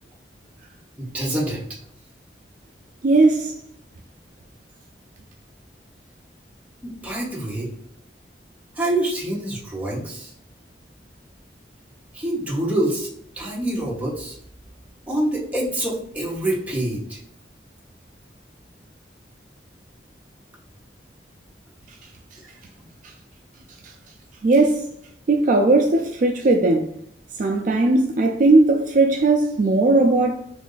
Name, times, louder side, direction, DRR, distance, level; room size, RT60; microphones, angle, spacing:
voice 1, 1.0-1.6 6.8-7.7 8.8-10.3 12.1-13.1 13.3-14.4 15.1-17.2, right 1 dB, 10° right, 0.8 m, -26 dB
voice 2, 3.0-3.6 23.0-23.1 23.8-23.9 24.4-24.9 25.3-26.9 27.4-30.3, right 2 dB, 45° right, 0.4 m, -18 dB
3.1 x 2.5 x 3.8 m
head